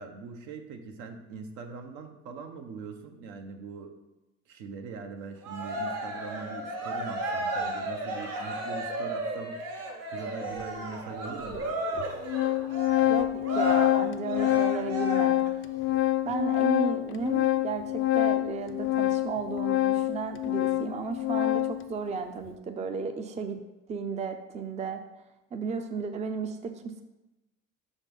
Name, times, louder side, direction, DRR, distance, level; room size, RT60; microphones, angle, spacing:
voice 1, 0.0-3.9 4.5-9.6 10.1-11.8, right 4 dB, 70° right, 6 dB, 1.0 m, -42 dB
Cheering, 5.4-15.5, right 1 dB, 55° right, 1.4 m, -33 dB
Organ, 10.6-10.7 11.5-11.6 12.0-21.8, left 14 dB, 45° left, 0.4 m, -26 dB
voice 2, 13.1-15.4 16.2-23.6 23.9-25.0 25.5-27.0, right 5 dB, 20° right, 7 dB, 0.5 m, -34 dB
6.1 x 4.1 x 5.3 m, 0.99 s
cardioid pair, 110°, 31 cm